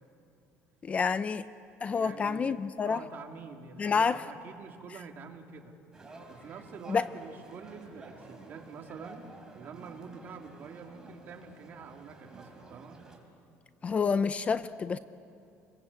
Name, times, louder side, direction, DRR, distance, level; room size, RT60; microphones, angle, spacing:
voice 1, 0.8-1.4 1.8-3.0 3.8-4.2 6.9-7.0 13.8-15.0, left 5 dB, 25° left, 13 dB, 0.6 m, -28 dB
voice 2, 1.9-5.8 6.3-9.3 9.5-13.0, right 5 dB, 40° right, 2 dB, 2.7 m, -46 dB
sound 1, 5.9-13.2, right 3 dB, 15° right, 3.7 m, -51 dB
29.5 x 22.0 x 8.4 m, 2.5 s
cardioid pair, 145°, 5 cm